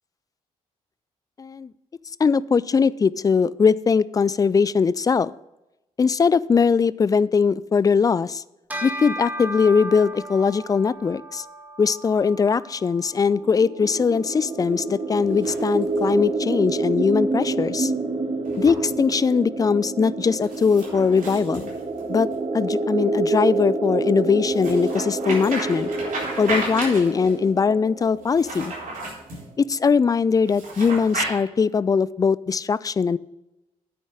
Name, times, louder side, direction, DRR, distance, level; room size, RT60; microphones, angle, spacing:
voice 1, 1.4-1.7 2.2-5.3 6.0-8.4 8.8-11.4 11.8-17.9 18.6-21.7 22.1-22.3 22.5-25.9 26.4-28.7 29.6-33.2, left 5 dB, 20° left, 20 dB, 0.4 m, -21 dB
Bell, 8.7-18.4, equal, 10° right, 2.1 m, -38 dB
sound 1, 13.4-29.0, right 3 dB, 30° right, 1.2 m, -28 dB
sound 2, 15.2-16.2 18.5-18.8 20.4-22.4 24.5-27.4 28.2-29.5 30.4-31.3, right 2 dB, 45° right, 4.1 m, -33 dB
9.3 x 6.8 x 6.3 m, 0.95 s
figure-of-eight pair, 40°, 18 cm